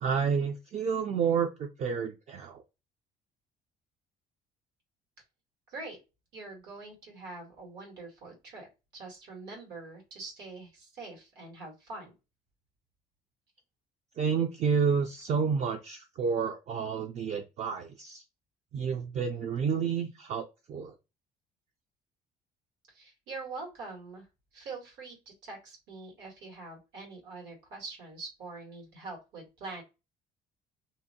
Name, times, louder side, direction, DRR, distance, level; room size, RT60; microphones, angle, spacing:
voice 1, 0.0-2.6 14.2-18.2 18.7-20.9, right 6 dB, 45° right, 5 dB, 0.4 m, -30 dB
voice 2, 5.7-6.0 6.3-8.7 8.9-12.1 22.9-24.3 24.5-29.8, right 3 dB, 80° right, 0 dB, 1.6 m, -44 dB
2.7 x 2.1 x 2.7 m, 0.27 s
cardioid pair, 110°, 17 cm